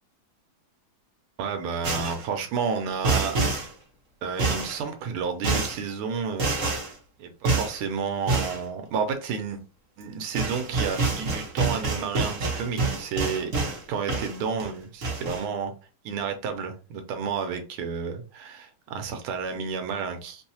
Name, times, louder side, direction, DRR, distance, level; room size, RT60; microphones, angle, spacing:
voice 1, 1.4-3.4 4.2-9.6 10.0-13.5 13.9-15.7 16.0-20.4, right 6 dB, 80° right, 5 dB, 1.5 m, -31 dB
sound 1, 1.8-2.3 3.0-3.7 4.4-4.8 5.4-5.8 6.4-6.9 7.5-7.8 8.3-8.6 10.0-10.1 10.4-13.8 14.1-14.7 15.0-15.4, right 3 dB, 45° right, 1.2 m, -27 dB
3.6 x 2.7 x 2.7 m, 0.33 s
omnidirectional pair, 2.4 m